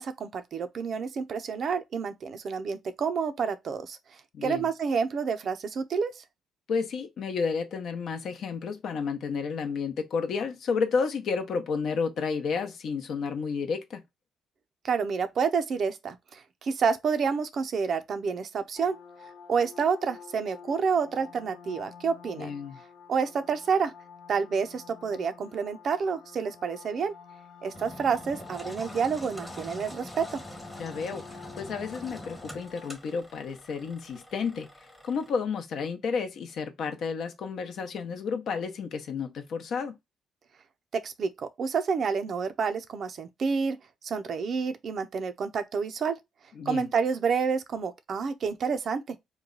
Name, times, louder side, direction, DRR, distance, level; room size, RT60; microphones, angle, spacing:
voice 1, 0.0-4.0 4.4-6.2 14.8-19.0 19.5-22.5 23.1-23.9 24.3-27.1 27.6-30.4 40.9-43.8 44.0-46.2 46.7-49.2, right 5 dB, 55° right, 0.5 m, -29 dB
voice 2, 4.3-4.7 6.7-14.0 22.4-22.8 30.8-34.7 35.0-39.9 46.6-46.9, left 5 dB, 65° left, 0.7 m, -31 dB
sound 1, 18.8-33.0, left 6 dB, 85° left, 1.1 m, -49 dB
Engine, 27.7-35.3, left 1 dB, 10° left, 0.9 m, -44 dB
3.1 x 2.2 x 3.8 m
cardioid pair, 90°, 0 cm